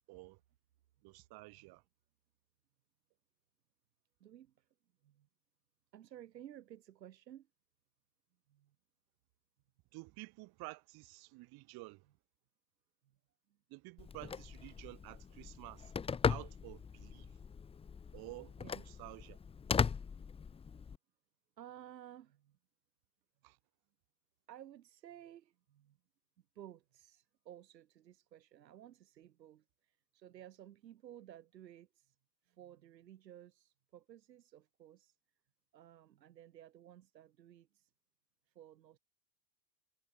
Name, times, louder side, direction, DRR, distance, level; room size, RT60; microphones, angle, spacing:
voice 1, 0.1-0.4 1.0-1.8 9.9-12.0 13.7-15.9 16.3-17.3 18.1-19.4 23.4-23.6, right 23 dB, 50° right, 3.8 m, -51 dB
voice 2, 4.2-4.7 5.0-5.3 5.9-7.5 8.5-8.7 13.0-13.2 13.5-13.6 15.4-15.6 18.6-19.0 20.4-20.5 21.6-22.6 24.5-26.0 26.5-32.2 32.4-35.2 35.7-37.9 38.5-39.0, right 11 dB, 85° right, 4.4 m, -56 dB
Telephone, 14.0-21.0, left 6 dB, 10° left, 0.7 m, -38 dB
hypercardioid pair, 110°, 49 cm